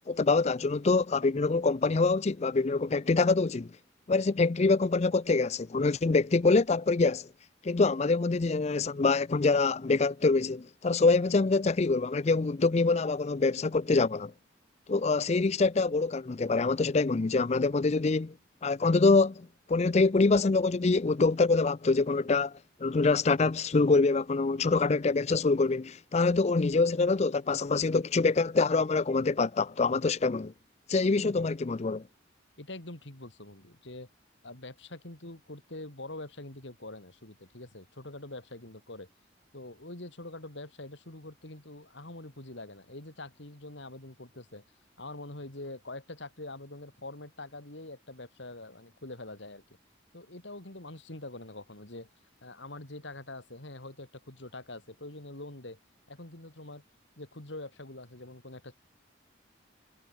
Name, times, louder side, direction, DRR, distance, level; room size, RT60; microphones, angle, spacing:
voice 1, 0.1-3.7 4.1-7.3 7.6-14.3 14.9-18.3 18.6-30.5 30.9-32.0, left 3 dB, 35° left, 0.5 m, -25 dB
voice 2, 31.2-31.5 32.6-34.1 34.4-39.1 39.5-44.6 45.0-49.6 50.1-52.1 52.4-55.8 56.1-56.8 57.2-58.7, left 2 dB, 70° left, 3.4 m, -44 dB
head